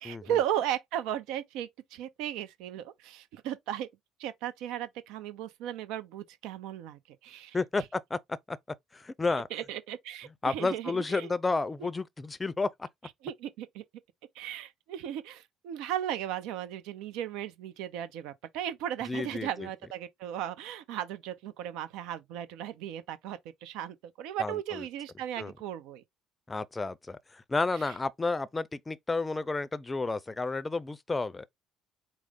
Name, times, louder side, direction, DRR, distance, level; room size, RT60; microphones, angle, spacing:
voice 1, 0.0-3.9 4.2-7.8 9.5-11.3 13.2-13.8 14.4-26.0 27.9-28.0, right 11 dB, 75° right, 0.5 m, -36 dB
voice 2, 7.5-8.2 8.5-8.6 8.9-9.5 10.4-12.9 19.1-19.7 24.4-24.8 25.4-25.5 26.5-31.5, left 3 dB, 20° left, 0.5 m, -31 dB
4.7 x 2.0 x 3.7 m
hypercardioid pair, 60°, 0 cm